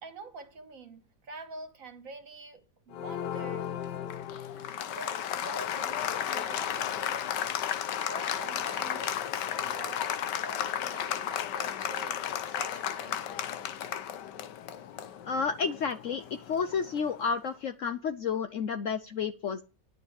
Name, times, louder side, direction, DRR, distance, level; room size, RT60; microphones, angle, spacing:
voice 1, 0.0-3.7 4.9-7.3 8.1-13.2, right 3 dB, 55° right, 1.9 m, -46 dB
Applause, 2.9-17.3, left 10 dB, 85° left, 1.4 m, -34 dB
voice 2, 15.2-19.6, left 6 dB, 60° left, 0.8 m, -31 dB
11.0 x 5.0 x 8.1 m
omnidirectional pair, 1.8 m